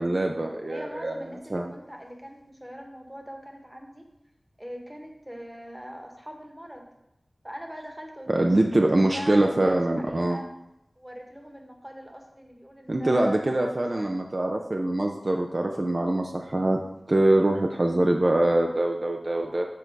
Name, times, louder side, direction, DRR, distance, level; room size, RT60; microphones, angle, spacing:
voice 1, 0.0-1.2 1.5-1.7 8.3-10.4 12.9-16.8 17.1-19.7, right 1 dB, 50° right, 2 dB, 0.5 m, -24 dB
voice 2, 0.6-4.1 4.6-6.9 7.4-10.5 11.0-14.1, equal, 10° right, 2 dB, 1.2 m, -42 dB
6.8 x 3.8 x 4.7 m, 0.87 s
wide cardioid pair, 45°, 0 cm